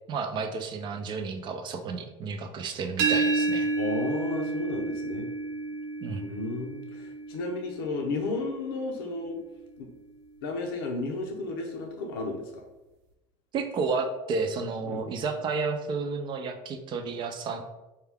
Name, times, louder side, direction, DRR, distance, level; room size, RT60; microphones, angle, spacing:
voice 1, 0.1-3.7 6.0-6.2 13.5-17.6, right 4 dB, 40° right, 6 dB, 0.5 m, -31 dB
sound 1, 3.0-8.7, right 3 dB, 70° right, 0.8 m, -30 dB
voice 2, 3.8-5.3 6.2-9.4 9.8-9.9 10.4-12.6 14.8-15.0, left 3 dB, 85° left, 2 dB, 0.6 m, -33 dB
4.6 x 2.3 x 3.4 m, 1.0 s
supercardioid pair, 110°, 12 cm